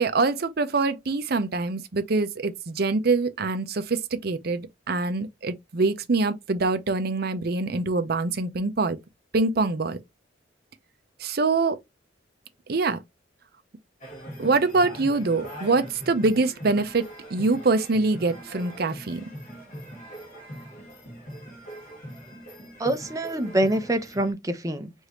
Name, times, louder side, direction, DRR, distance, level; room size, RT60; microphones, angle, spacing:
voice 1, 0.0-9.0 9.3-10.0 11.2-11.8 12.7-13.0 14.4-17.0 17.3-19.2, right 3 dB, 55° right, 0.6 m, -24 dB
sound 1, 14.0-24.3, right 1 dB, 40° left, 1.5 m, -41 dB
voice 2, 22.8-24.9, right 1 dB, 20° right, 0.6 m, -25 dB
4.9 x 2.6 x 3.0 m
head